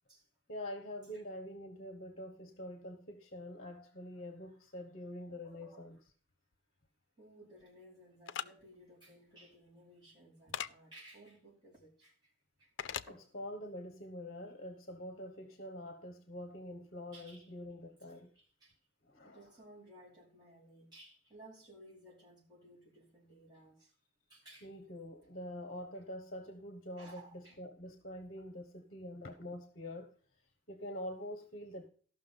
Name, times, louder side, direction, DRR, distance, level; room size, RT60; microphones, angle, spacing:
voice 1, 0.5-6.0 13.1-18.3 19.0-19.5 24.6-30.1 30.7-31.9, left 1 dB, 50° left, 1.1 m, -45 dB
voice 2, 5.3-5.8 7.2-12.3 12.6-12.7 13.1-13.2 17.1-17.5 18.3-18.8 19.2-23.9 24.3-24.7 27.0-27.6, right 1 dB, 20° right, 4.4 m, -58 dB
sound 1, 8.3-8.5 10.5-10.7 12.8-13.1, left 9 dB, 70° left, 0.4 m, -38 dB
14.0 x 6.0 x 5.4 m
head